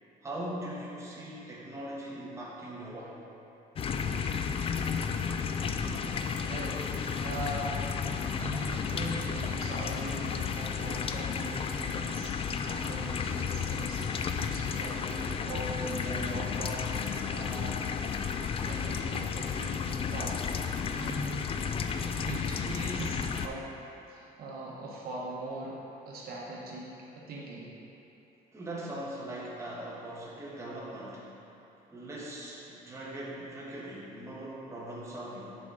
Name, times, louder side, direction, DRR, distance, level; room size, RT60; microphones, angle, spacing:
voice 1, 0.2-3.2 28.5-31.3 31.9-35.6, right 1 dB, 15° right, -6 dB, 1.4 m, -40 dB
sound 1, 3.8-23.5, left 6 dB, 35° left, 0.3 m, -32 dB
voice 2, 5.8-6.9 7.2-7.8 8.1-17.8 18.6-20.4 20.9-21.6 22.0-23.7 24.1-25.8 26.0-26.9 27.1-27.7, right 1 dB, 65° right, -4 dB, 1.2 m, -40 dB
6.9 x 5.1 x 3.9 m, 2.9 s
cardioid pair, 110°, 17 cm